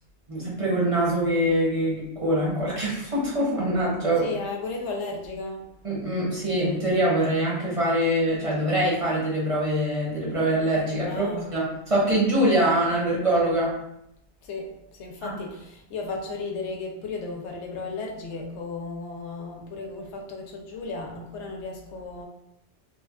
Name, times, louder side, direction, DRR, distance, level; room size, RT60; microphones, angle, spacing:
voice 1, 0.3-4.3 5.8-11.3 11.5-13.8 15.2-15.3, right 1 dB, 35° right, -6 dB, 0.7 m, -24 dB
voice 2, 4.2-5.7 11.1-11.5 14.4-14.7 15.0-22.2, left 3 dB, 80° left, 0 dB, 0.9 m, -34 dB
3.1 x 2.2 x 2.3 m, 0.79 s
omnidirectional pair, 1.2 m